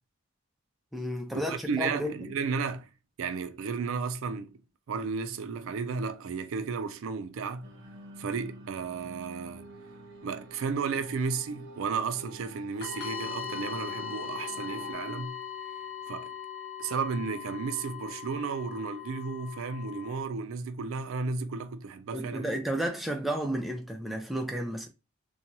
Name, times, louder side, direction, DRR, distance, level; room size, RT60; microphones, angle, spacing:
voice 1, 0.9-2.3 22.1-24.9, right 1 dB, ahead, 0.4 m, -32 dB
voice 2, 1.5-2.9 3.2-4.6 4.9-7.7 8.2-9.7 10.2-15.4 16.1-16.3 16.8-22.5, right 5 dB, 75° right, 0.4 m, -33 dB
sound 1, 7.6-14.9, right 1 dB, 55° right, 0.8 m, -47 dB
sound 2, 12.8-20.2, left 8 dB, 50° left, 0.9 m, -40 dB
2.9 x 2.2 x 2.6 m
head